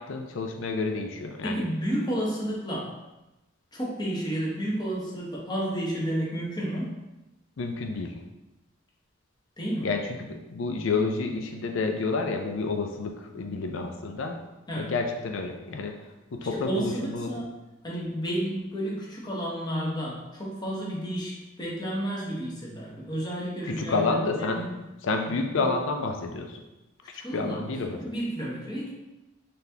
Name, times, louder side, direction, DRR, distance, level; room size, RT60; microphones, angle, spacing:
voice 1, 0.0-1.6 7.6-8.2 9.8-14.4 14.8-15.9 16.3-17.3 23.6-24.6 25.0-26.6 27.3-28.0, left 3 dB, 75° left, 4 dB, 0.4 m, -29 dB
voice 2, 1.4-3.0 3.7-6.9 9.6-9.9 14.7-14.9 16.5-17.5 17.8-24.8 25.3-25.4 27.2-28.9, equal, 20° left, -4 dB, 0.9 m, -31 dB
4.0 x 3.4 x 2.8 m, 1.0 s
head